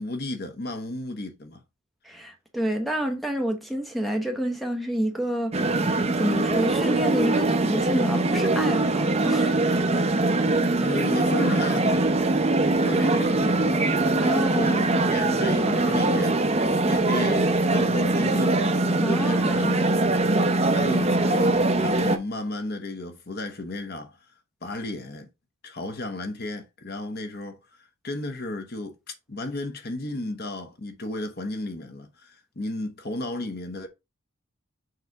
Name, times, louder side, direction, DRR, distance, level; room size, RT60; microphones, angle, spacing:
voice 1, 0.0-1.6 10.8-12.1 12.8-13.8 14.1-18.6 19.0-20.0 20.7-24.3 24.6-25.3 25.6-33.9, left 2 dB, 45° left, 1.0 m, -34 dB
voice 2, 2.0-5.5 5.9-9.5 14.2-14.8 19.0-19.7, equal, ahead, 0.9 m, -28 dB
sound 1, 5.5-22.2, right 2 dB, 30° right, 0.7 m, -22 dB
6.6 x 3.2 x 4.7 m
head